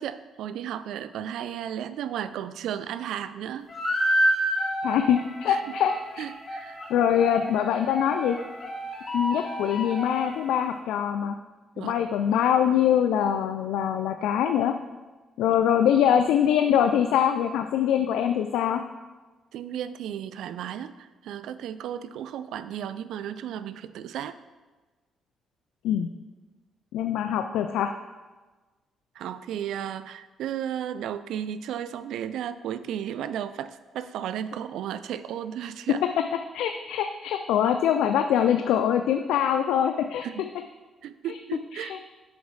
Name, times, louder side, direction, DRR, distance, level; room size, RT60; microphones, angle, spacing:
voice 1, 0.0-3.7 4.6-4.7 5.5-5.8 6.2-6.8 11.8-12.0 19.5-24.4 29.2-36.0 40.2-40.4 41.0-42.0, right 10 dB, 80° right, 13 dB, 0.3 m, -34 dB
sound 1, 3.7-10.7, equal, 40° left, 1.1 m, -30 dB
voice 2, 4.8-6.2 6.9-8.4 9.1-11.4 11.8-14.7 15.4-18.8 25.8-26.1 26.9-27.9 36.5-40.2 41.3-41.4 41.7-42.0, left 9 dB, 90° left, 7 dB, 0.3 m, -23 dB
7.2 x 7.1 x 3.2 m, 1.2 s
cardioid pair, 90°, 0 cm